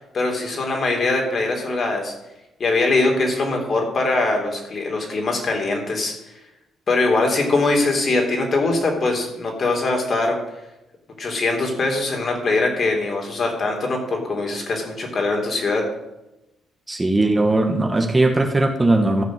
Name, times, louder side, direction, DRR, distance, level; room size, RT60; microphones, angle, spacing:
voice 1, 0.0-2.1 2.6-6.1 6.9-10.4 11.2-15.8, left 3 dB, 45° left, 1 dB, 3.5 m, -22 dB
voice 2, 16.9-19.2, right 2 dB, 20° right, 3 dB, 1.4 m, -19 dB
13.5 x 5.3 x 7.6 m, 0.94 s
cardioid pair, 90°, 0 cm